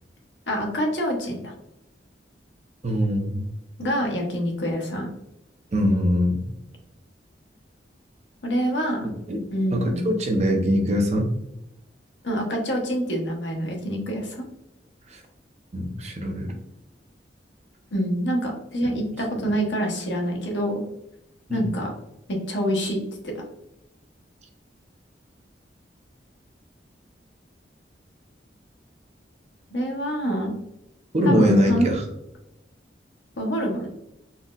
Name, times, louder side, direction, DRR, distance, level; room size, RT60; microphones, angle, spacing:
voice 1, 0.5-1.5 3.8-5.1 8.4-9.1 9.5-10.1 12.2-14.4 17.9-20.8 21.5-21.9 22.3-23.4 29.7-30.5 31.2-32.0 33.4-33.9, equal, 80° left, 0 dB, 0.9 m, -26 dB
voice 2, 2.8-3.5 5.7-6.5 9.3-9.4 9.7-11.3 15.1-15.2 15.7-16.5 18.8-18.9 21.5-21.7 31.1-32.0, equal, 40° right, 2 dB, 0.6 m, -22 dB
4.0 x 2.1 x 2.4 m, 0.86 s
head